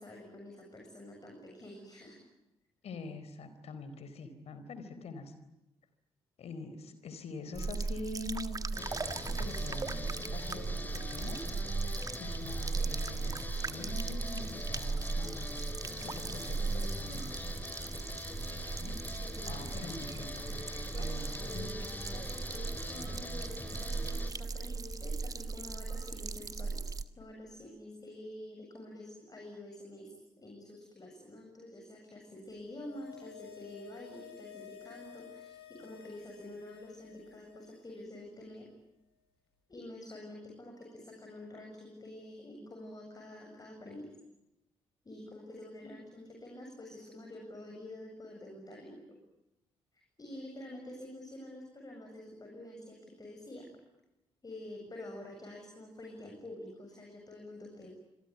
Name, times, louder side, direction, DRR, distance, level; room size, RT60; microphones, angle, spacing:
voice 1, 0.0-2.2 19.2-19.9 20.9-38.7 39.7-44.1 45.0-49.0 49.9-53.7 54.4-57.9, left 1 dB, 30° left, 1 dB, 7.6 m, -48 dB
voice 2, 2.8-5.3 6.4-10.7 10.9-15.5 16.0-17.5 18.8-19.0 19.4-20.5 21.0-21.2 21.5-21.6 45.8-45.9, left 3 dB, 50° left, 11 dB, 4.2 m, -45 dB
sound 1, 7.6-27.0, right 4 dB, 25° right, 1.6 m, -37 dB
sound 2, 8.8-24.3, left 1 dB, 15° left, 4.2 m, -43 dB
sound 3, 32.5-38.0 38.3-38.4, left 11 dB, 80° left, 6.3 m, -53 dB
27.0 x 22.0 x 9.7 m, 0.91 s
figure-of-eight pair, 40°, 13 cm